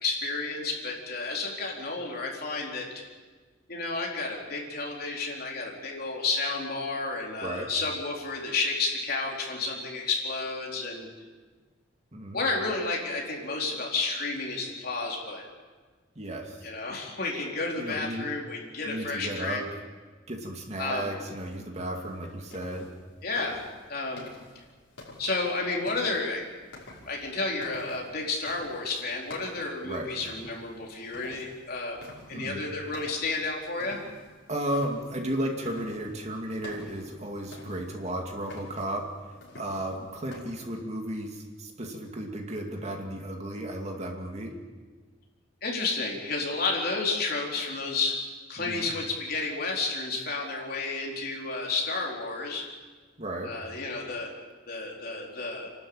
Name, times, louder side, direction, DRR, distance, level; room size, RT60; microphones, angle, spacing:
voice 1, 0.0-2.9 3.7-11.1 12.3-15.4 16.6-19.6 20.8-21.1 23.2-23.6 23.9-24.2 25.2-26.5 26.9-32.0 32.3-34.0 45.6-48.2 48.5-52.7 53.4-54.3 54.7-55.7, left 3 dB, 50° left, -1 dB, 4.1 m, -31 dB
voice 2, 16.2-16.7 17.8-18.3 18.8-19.6 20.3-22.9 29.8-30.1 32.3-32.6 34.5-39.0 39.6-44.5 48.6-48.9 53.2-53.5, right 1 dB, 35° right, 2 dB, 2.5 m, -34 dB
sound 1, 21.9-40.4, left 2 dB, 70° left, 5.7 m, -49 dB
29.0 x 12.5 x 8.9 m, 1.4 s
head